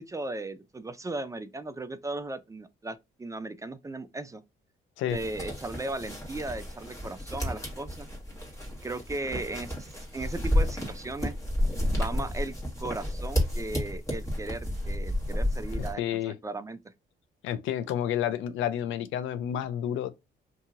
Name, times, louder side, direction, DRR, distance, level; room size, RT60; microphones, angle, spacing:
voice 1, 0.0-4.4 5.1-8.1 8.8-9.9 10.1-11.4 11.9-16.8, right 2 dB, 15° right, 0.4 m, -36 dB
sound 1, 5.1-15.9, left 1 dB, 15° left, 1.4 m, -31 dB
voice 2, 15.7-16.4 17.4-20.1, left 10 dB, 80° left, 0.4 m, -30 dB
2.8 x 2.7 x 2.4 m
cardioid pair, 90°, 20 cm